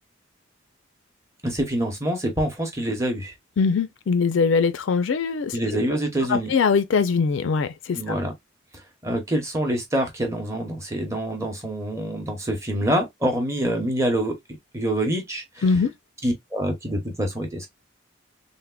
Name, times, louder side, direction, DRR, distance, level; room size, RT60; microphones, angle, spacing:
voice 1, 1.4-3.3 5.5-6.5 7.9-8.3 9.0-14.4 14.7-15.4 16.2-17.7, right 1 dB, 15° right, 0.7 m, -26 dB
voice 2, 3.6-5.8 6.3-8.1 15.6-15.9, left 5 dB, 70° left, 0.4 m, -22 dB
3.4 x 2.1 x 2.2 m
head